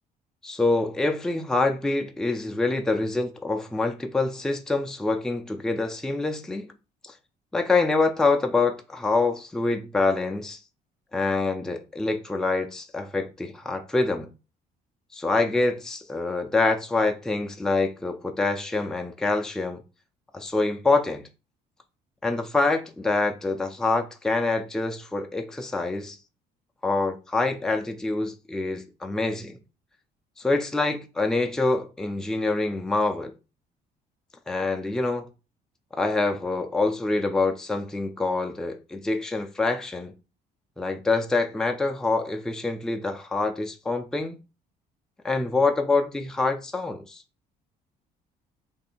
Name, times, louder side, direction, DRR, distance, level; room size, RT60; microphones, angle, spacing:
voice 1, 0.4-6.7 7.0-7.1 7.5-10.6 11.1-14.3 15.1-19.8 20.3-21.3 22.2-26.2 26.8-29.6 30.4-33.3 34.5-35.3 35.9-40.1 40.8-44.4 45.2-47.2, left 3 dB, 5° left, 0.4 m, -26 dB
3.2 x 2.6 x 4.3 m
cardioid pair, 110°, 17 cm